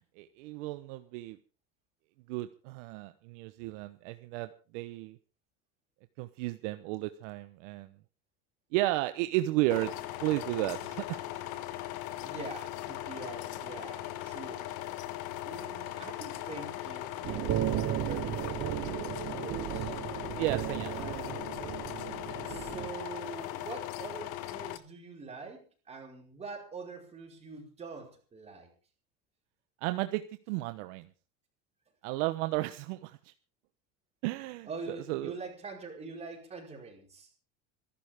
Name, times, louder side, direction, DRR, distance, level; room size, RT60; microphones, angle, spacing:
voice 1, 0.0-1.4 2.3-5.2 6.2-7.9 8.7-9.9 10.2-11.2 20.3-21.0 29.8-31.1 32.0-33.3 34.2-35.4, right 17 dB, 80° right, 10 dB, 1.1 m, -33 dB
sound 1, 9.7-24.8, left 14 dB, 55° left, 1.5 m, -39 dB
voice 2, 12.2-14.7 15.4-20.0 20.9-21.5 22.4-28.7 34.7-37.3, right 4 dB, 15° right, 0 dB, 5.0 m, -45 dB
sound 2, 17.2-22.9, right 13 dB, 35° right, 0.7 m, -35 dB
26.0 x 11.5 x 3.6 m, 0.36 s
cardioid pair, 170°, 36 cm